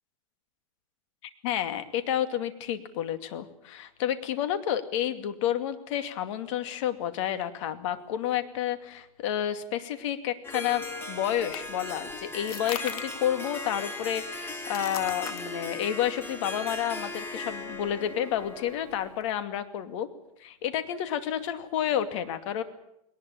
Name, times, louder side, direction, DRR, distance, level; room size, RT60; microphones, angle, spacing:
voice 1, 1.4-20.1 20.4-22.6, left 10 dB, 55° left, 9 dB, 2.4 m, -30 dB
Harp, 10.4-19.2, left 2 dB, 10° left, 2.2 m, -38 dB
sound 1, 10.7-19.3, left 9 dB, 80° left, 2.8 m, -44 dB
21.0 x 19.5 x 8.6 m, 0.79 s
supercardioid pair, 140°, 18 cm